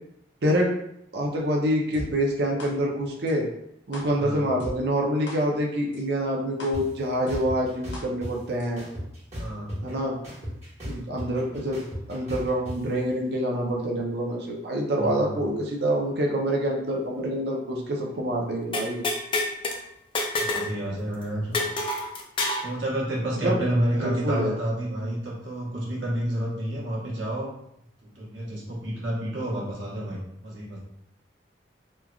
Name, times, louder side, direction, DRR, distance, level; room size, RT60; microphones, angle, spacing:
voice 1, 1.1-3.5 3.9-8.8 9.8-10.2 10.9-11.8 12.1-19.0 23.4-23.6 23.9-24.5, right 1 dB, 60° right, -1 dB, 0.5 m, -26 dB
sound 1, 1.9-2.0 2.6-2.7 3.3-3.4 3.9-4.0 4.6-4.7 5.3-5.4 5.9-6.0 6.6-6.7 7.3-7.4 7.9-8.0 8.6-8.7, left 1 dB, 70° left, 0.6 m, -36 dB
voice 2, 4.2-4.5 9.4-9.8 15.0-15.4 20.4-21.8 22.6-27.5 28.0-30.8, right 1 dB, 80° right, -5 dB, 1.1 m, -30 dB
sound 2, 6.7-6.8 7.3-8.3 8.8-9.9 10.2-12.8, equal, 35° right, 1.3 m, -35 dB
sound 3, 18.7-19.8 20.2-20.7 21.0-21.1 21.5-22.7, left 2 dB, 25° left, 0.3 m, -27 dB
3.1 x 2.4 x 2.3 m, 0.77 s
head